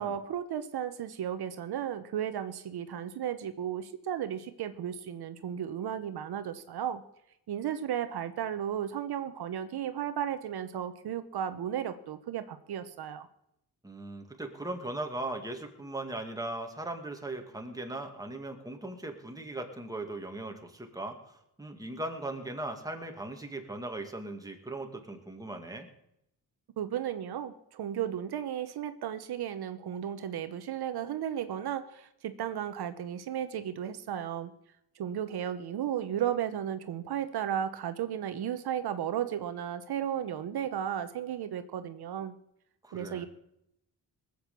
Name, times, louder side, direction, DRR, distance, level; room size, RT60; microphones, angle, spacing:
voice 1, 0.0-7.0 7.5-13.3 26.8-34.5 35.0-42.3 42.9-43.3, right 9 dB, 80° right, 10 dB, 1.0 m, -34 dB
voice 2, 13.8-25.9 42.8-43.3, right 2 dB, 10° right, 3 dB, 2.2 m, -38 dB
20.0 x 8.0 x 6.9 m, 0.78 s
cardioid pair, 115°, 38 cm